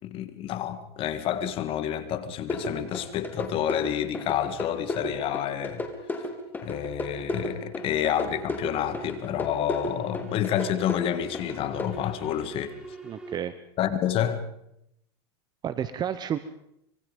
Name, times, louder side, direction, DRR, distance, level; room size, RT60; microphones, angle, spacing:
voice 1, 0.0-5.8 6.6-12.8 13.8-14.5, left 10 dB, 40° left, 2.3 m, -29 dB
sound 1, 2.5-11.9, left 2 dB, 15° left, 3.6 m, -33 dB
sound 2, 4.1-13.4, right 3 dB, 5° right, 5.9 m, -46 dB
voice 2, 13.0-13.5 15.6-16.4, right 9 dB, 30° right, 1.2 m, -30 dB
25.5 x 23.5 x 5.5 m
supercardioid pair, 120°, 14 cm